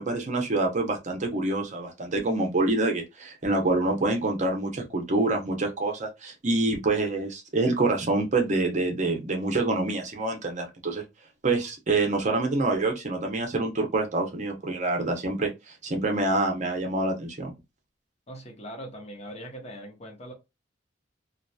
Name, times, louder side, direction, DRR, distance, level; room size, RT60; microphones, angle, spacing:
voice 1, 0.0-11.0 11.4-17.5, right 2 dB, 40° right, 0.7 m, -26 dB
voice 2, 18.3-20.3, equal, 35° left, 0.9 m, -41 dB
2.8 x 2.3 x 2.2 m
head